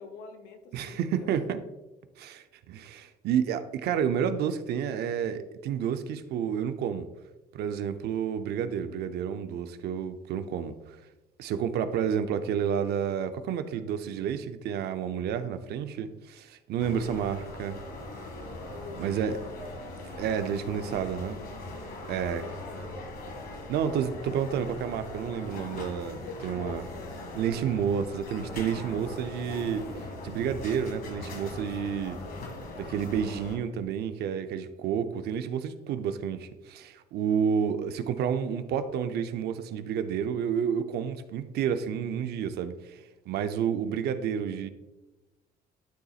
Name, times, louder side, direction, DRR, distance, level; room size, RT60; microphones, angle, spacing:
voice 1, 0.0-1.4 18.7-19.5 20.6-21.0 22.3-22.9 26.2-27.1 32.2-32.8, left 4 dB, 90° left, 5 dB, 1.0 m, -45 dB
voice 2, 0.7-1.6 2.2-7.1 7.5-11.0 11.4-17.8 19.0-19.3 20.2-21.4 22.1-22.4 23.7-26.8 27.3-29.9 30.2-32.2 32.9-43.0 43.3-44.7, right 8 dB, 70° right, 9 dB, 0.6 m, -30 dB
sound 1, 16.8-33.6, left 2 dB, 65° left, 1.6 m, -40 dB
12.0 x 4.0 x 2.4 m, 1.1 s
cardioid pair, 110°, 17 cm